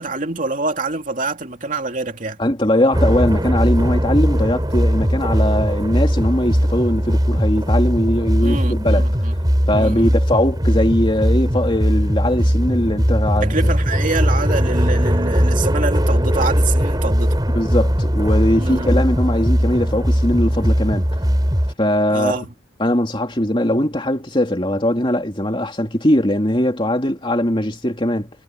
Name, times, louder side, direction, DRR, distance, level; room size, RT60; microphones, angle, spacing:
voice 1, 0.0-2.4 8.4-9.3 9.7-10.1 13.4-17.3 18.6-18.9 22.1-22.5, right 3 dB, 40° right, 2.7 m, -25 dB
voice 2, 2.4-9.1 9.7-13.7 17.5-21.1 21.8-22.4 22.8-28.3, left 1 dB, 25° left, 2.9 m, -20 dB
sound 1, 2.9-21.7, equal, 20° right, 4.5 m, -19 dB
head